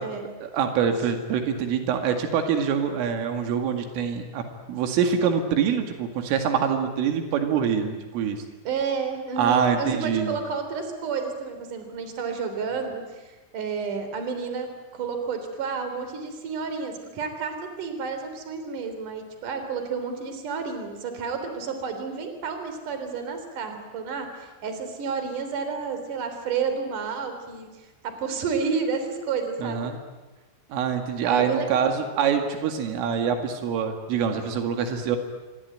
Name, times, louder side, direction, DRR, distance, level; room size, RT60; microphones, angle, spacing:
voice 1, 0.4-4.4 4.7-8.4 9.4-10.4 29.6-29.9 30.7-35.2, right 7 dB, 85° right, 5 dB, 4.7 m, -25 dB
voice 2, 8.6-27.7 28.0-29.9 31.2-31.9, right 5 dB, 45° right, 7 dB, 4.7 m, -31 dB
26.5 x 23.5 x 9.3 m, 1.1 s
omnidirectional pair, 5.6 m